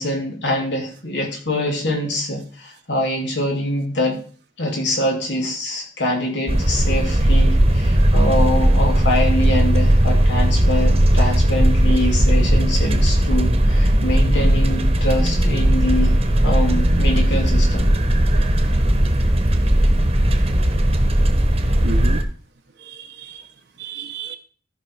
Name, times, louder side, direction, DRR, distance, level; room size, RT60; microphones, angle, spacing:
voice 1, 0.0-4.2 4.6-16.1 16.4-17.9, left 1 dB, 80° left, 0 dB, 3.1 m, -24 dB
sound 1, 6.5-22.2, right 1 dB, 35° right, 1.2 m, -17 dB
voice 2, 18.3-18.8 21.8-22.2 22.9-23.4 23.8-24.4, right 3 dB, 70° right, 5 dB, 0.9 m, -32 dB
14.0 x 5.4 x 4.8 m, 0.41 s
head